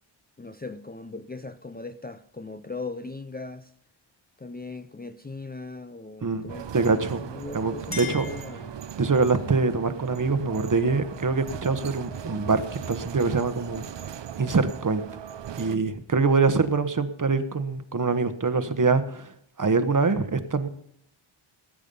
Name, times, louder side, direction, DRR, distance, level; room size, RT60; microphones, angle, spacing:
voice 1, 0.4-3.7 4.4-8.8, left 3 dB, 20° left, 0.6 m, -39 dB
voice 2, 6.2-7.2 7.5-8.3 9.0-12.6 12.9-14.0 14.4-15.0 15.6-19.3 19.6-20.7, right 4 dB, 40° right, 1.2 m, -24 dB
sound 1, 6.5-15.8, right 9 dB, 60° right, 0.7 m, -39 dB
Chink clink, 7.8-9.2, left 5 dB, 45° left, 4.8 m, -40 dB
19.0 x 8.5 x 5.4 m
wide cardioid pair, 110°, 50 cm